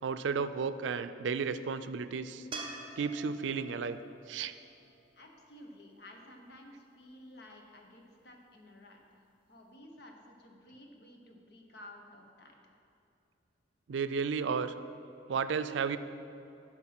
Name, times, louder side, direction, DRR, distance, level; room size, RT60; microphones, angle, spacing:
voice 1, 0.0-2.5 3.0-4.0 4.3-4.5 13.9-14.7 15.3-16.0, right 5 dB, 90° right, 11 dB, 0.4 m, -33 dB
sound 1, 2.5-5.8 9.0-9.1, right 3 dB, 30° right, 0.7 m, -47 dB
voice 2, 5.1-12.5, left 1 dB, 60° left, 2 dB, 1.1 m, -53 dB
11.0 x 4.4 x 6.0 m, 2.7 s
head